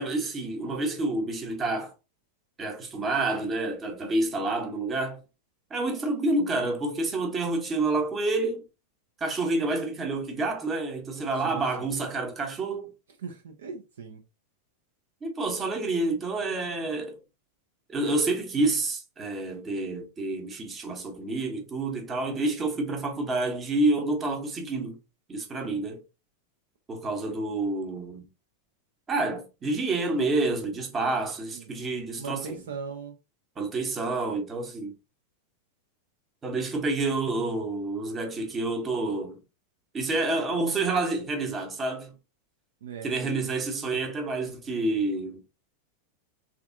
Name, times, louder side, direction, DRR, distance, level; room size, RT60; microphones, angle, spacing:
voice 1, 0.0-1.9 2.6-5.2 5.7-8.6 9.2-12.9 15.2-17.2 17.9-25.0 25.3-26.0 26.9-28.3 29.1-32.7 33.6-34.9 36.4-39.4 39.9-42.1 43.0-45.4, right 2 dB, 20° right, 0.8 m, -28 dB
voice 2, 11.4-12.0 13.2-14.2 31.5-31.7 32.2-33.1 42.8-43.3, right 5 dB, 60° right, 0.4 m, -39 dB
3.3 x 2.4 x 2.4 m
figure-of-eight pair, 90°, 0 cm